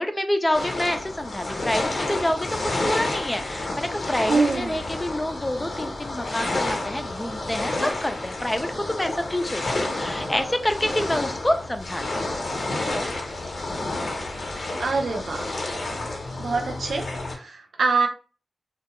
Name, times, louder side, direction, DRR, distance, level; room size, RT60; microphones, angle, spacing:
voice 1, 0.0-12.3, left 1 dB, 20° left, 7 dB, 0.5 m, -27 dB
sound 1, 0.5-17.4, left 2 dB, 70° left, 0.8 m, -30 dB
voice 2, 4.3-4.8 14.8-15.5 16.4-18.1, right 4 dB, 85° right, 2 dB, 0.5 m, -25 dB
2.3 x 2.2 x 2.9 m, 0.36 s
cardioid pair, 40°, 0 cm